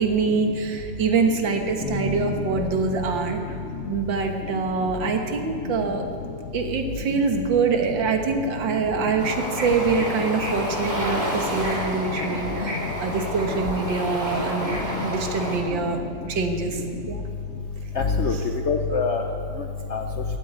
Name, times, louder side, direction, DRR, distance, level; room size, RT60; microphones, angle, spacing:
voice 1, 0.0-3.6 3.9-6.1 6.5-16.0 16.3-16.8 17.1-17.2, right 5 dB, 65° right, 4 dB, 2.0 m, -25 dB
Bass guitar, 1.8-5.8, left 2 dB, 35° left, 2.6 m, -34 dB
Bird / Ocean, 9.2-15.6, equal, 20° right, 2.8 m, -29 dB
voice 2, 12.2-12.7 13.5-13.6 14.4-15.1 15.7-15.8 16.9-17.0 17.9-18.4 18.6-19.2 19.6-20.0, left 5 dB, 80° left, 4 dB, 0.6 m, -27 dB
15.0 x 9.3 x 9.5 m, 2.4 s
omnidirectional pair, 2.3 m